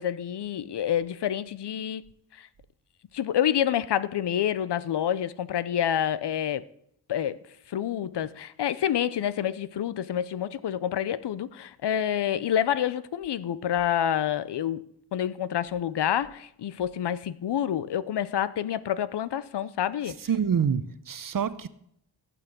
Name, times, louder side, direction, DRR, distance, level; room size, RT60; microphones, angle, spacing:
voice 1, 0.0-2.0 3.1-6.6 7.1-7.4 7.7-14.8 15.1-20.2, left 10 dB, 65° left, 0.7 m, -28 dB
voice 2, 20.3-21.7, right 7 dB, 45° right, 0.8 m, -26 dB
15.5 x 5.9 x 6.8 m
cardioid pair, 70°, 44 cm